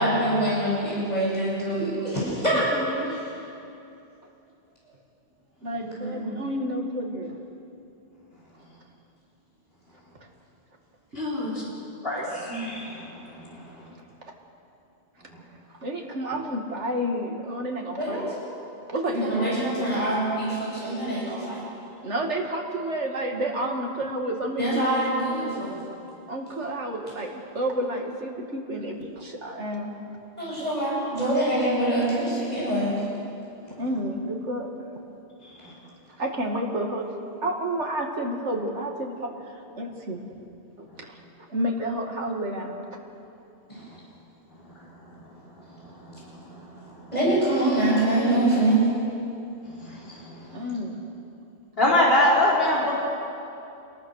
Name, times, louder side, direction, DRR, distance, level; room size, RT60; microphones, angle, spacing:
voice 1, 0.0-2.6 6.0-6.4 18.0-18.2 19.0-21.6 24.6-25.8 30.4-33.0 43.7-43.8 47.1-48.9, right 1 dB, 35° left, -7 dB, 8.2 m, -24 dB
voice 2, 2.5-3.3 5.6-7.4 11.4-11.5 15.7-18.3 18.9-19.9 22.0-24.9 25.7-25.9 26.3-30.0 30.6-30.8 33.8-34.7 36.2-37.1 37.4-40.2 40.8-41.2 41.5-42.9 50.5-51.1, right 1 dB, 75° right, 1 dB, 2.6 m, -30 dB
voice 3, 11.1-11.6 12.0-13.2 13.8-13.9 35.6-35.7 46.0-46.4 46.8-46.9 49.8-50.4 51.8-52.9, left 1 dB, 55° left, -6 dB, 4.7 m, -24 dB
28.0 x 21.5 x 6.5 m, 2.7 s
omnidirectional pair, 1.2 m